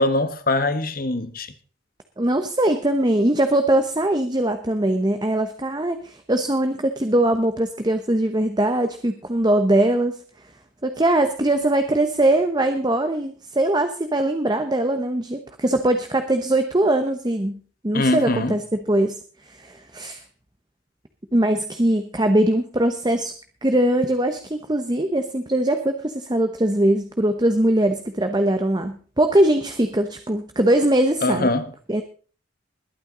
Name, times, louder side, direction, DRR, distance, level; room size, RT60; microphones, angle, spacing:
voice 1, 0.0-1.5 17.9-18.6 31.2-31.7, left 2 dB, 45° left, 1.3 m, -22 dB
voice 2, 2.2-10.2 10.8-17.6 17.8-18.6 18.9-19.2 19.4-20.2 21.3-23.3 23.6-31.5 31.9-32.0, right 1 dB, 20° right, 0.9 m, -21 dB
21.0 x 9.2 x 3.9 m
head